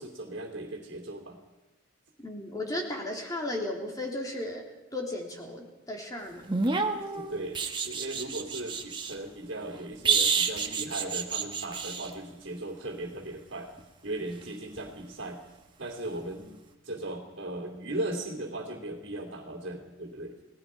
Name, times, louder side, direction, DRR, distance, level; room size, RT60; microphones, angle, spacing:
voice 1, 0.0-1.4 7.1-13.7 14.0-15.4 15.8-16.6 16.8-20.4, right 1 dB, 55° right, -1 dB, 2.9 m, -37 dB
voice 2, 2.2-4.6 4.9-6.5, left 1 dB, 15° left, 0 dB, 3.3 m, -35 dB
sound 1, 6.5-9.1 10.0-12.1 14.7-14.9, right 5 dB, 20° right, 1.5 m, -29 dB
30.0 x 18.0 x 5.1 m, 1.1 s
head